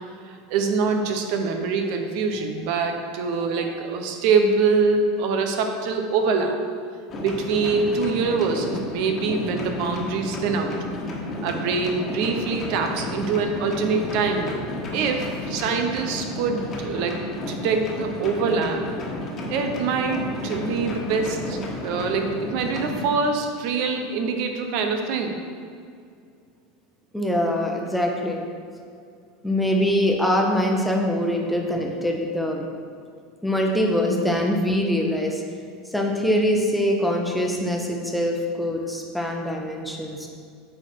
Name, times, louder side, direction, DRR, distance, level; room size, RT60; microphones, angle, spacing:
voice 1, 0.3-6.6 7.2-10.7 11.4-14.6 14.9-17.2 17.5-18.8 19.5-25.4, right 4 dB, 65° right, 5 dB, 0.9 m, -24 dB
sound 1, 7.1-23.0, left 1 dB, 35° left, 1.4 m, -32 dB
voice 2, 27.1-28.4 29.4-32.7 33.4-35.4 35.9-40.4, equal, 5° left, 1 dB, 1.0 m, -23 dB
8.4 x 4.5 x 4.6 m, 2.3 s
supercardioid pair, 115°, 0 cm